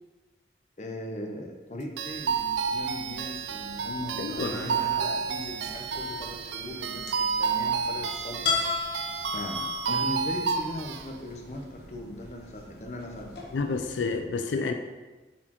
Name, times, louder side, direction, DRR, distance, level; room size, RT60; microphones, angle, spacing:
voice 1, 0.8-8.7 9.3-13.5, left 1 dB, 40° left, 2 dB, 0.7 m, -39 dB
sound 1, 2.0-11.0, right 5 dB, 80° right, 0.4 m, -30 dB
sound 2, 2.1-14.2, left 4 dB, 65° left, 1.1 m, -38 dB
voice 2, 4.2-4.5 13.5-14.7, left 4 dB, 90° left, 6 dB, 0.4 m, -29 dB
7.4 x 4.2 x 3.0 m, 1.2 s
head